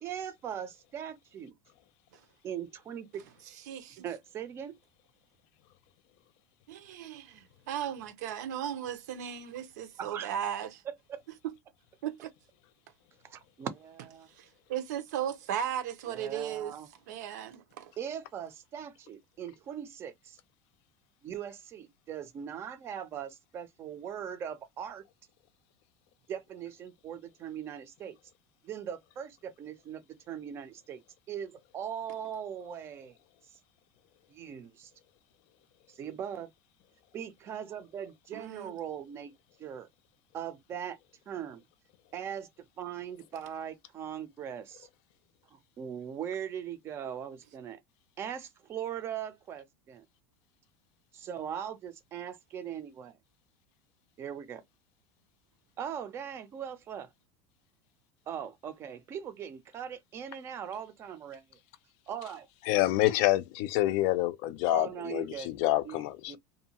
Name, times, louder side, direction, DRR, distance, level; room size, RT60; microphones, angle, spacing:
voice 1, 0.0-1.5 2.4-3.2 4.0-4.7 10.0-10.3 10.8-11.2 13.2-14.3 16.1-16.9 18.0-20.4 21.2-25.0 26.3-28.2 28.6-31.0 31.3-33.1 34.3-34.9 35.9-36.5 37.1-39.3 39.6-39.9 40.3-41.0 41.3-41.6 42.1-42.5 42.8-44.9 45.5-47.8 48.2-50.0 51.1-53.2 54.2-54.6 55.8-57.1 58.3-61.6 62.1-62.5 64.7-65.5 65.8-66.4, right 9 dB, 30° right, 0.5 m, -40 dB
voice 2, 3.7-4.1 6.7-10.8 11.4-11.5 12.0-12.3 14.4-16.7 17.1-17.9 38.3-38.7, right 9 dB, 85° right, 0.8 m, -36 dB
voice 3, 62.7-66.4, left 15 dB, 55° left, 0.4 m, -27 dB
2.6 x 2.2 x 2.8 m
supercardioid pair, 155°, 9 cm